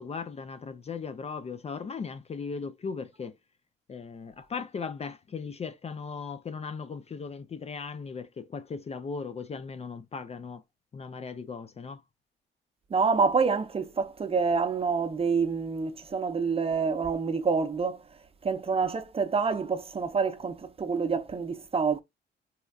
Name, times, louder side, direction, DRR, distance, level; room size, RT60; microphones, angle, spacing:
voice 1, 0.0-3.3 3.9-10.6 10.9-12.0, left 5 dB, 30° left, 0.4 m, -37 dB
voice 2, 12.9-18.0 18.4-22.0, right 5 dB, 30° right, 0.7 m, -27 dB
4.2 x 2.3 x 2.3 m
cardioid pair, 90°, 20 cm